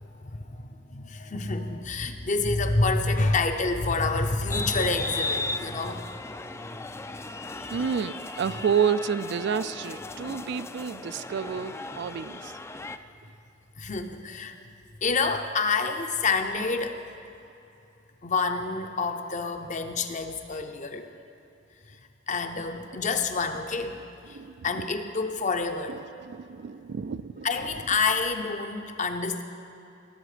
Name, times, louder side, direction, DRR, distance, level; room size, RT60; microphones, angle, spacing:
voice 1, 0.0-6.1 7.6-8.2 8.5-8.6 13.8-14.6 15.0-17.0 18.2-21.1 21.9-22.0 22.3-24.0 24.3-24.4 24.6-26.0 27.4-29.4, left 3 dB, 40° left, 7 dB, 0.7 m, -28 dB
sound 1, 4.5-13.0, left 2 dB, 15° left, 0.3 m, -36 dB
voice 2, 7.7-12.4 24.3-24.5 26.3-27.5, right 7 dB, 65° right, 14 dB, 0.3 m, -29 dB
18.0 x 8.3 x 5.0 m, 2.8 s
head